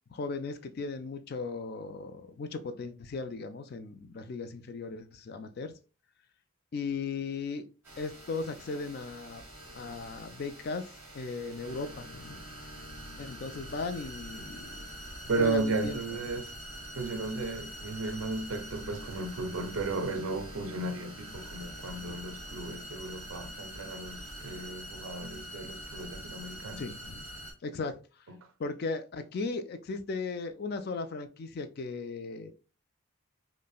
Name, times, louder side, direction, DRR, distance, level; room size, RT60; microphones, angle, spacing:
voice 1, 0.1-5.7 6.7-7.6 8.0-9.4 9.8-10.9 11.1-12.4 13.2-14.9 15.4-16.0 21.8-22.2 26.8-27.3 27.6-28.0 28.6-32.5, left 4 dB, 45° left, 0.3 m, -37 dB
sound 1, 7.8-27.5, right 1 dB, 10° right, 2.0 m, -45 dB
voice 2, 15.3-16.5 16.9-26.9, right 3 dB, 70° right, 0.5 m, -34 dB
5.2 x 2.1 x 2.3 m
head